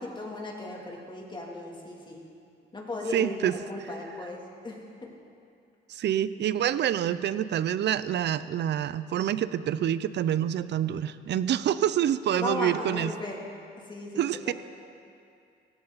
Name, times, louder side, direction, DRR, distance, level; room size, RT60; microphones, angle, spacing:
voice 1, 0.0-2.2 2.7-5.1 12.4-13.4 13.9-14.5, left 2 dB, 25° left, -1 dB, 2.8 m, -36 dB
voice 2, 3.1-3.5 5.9-13.1 14.2-14.5, right 10 dB, 60° right, 15 dB, 0.6 m, -27 dB
17.0 x 15.0 x 4.1 m, 2.4 s
cardioid pair, 90°, 20 cm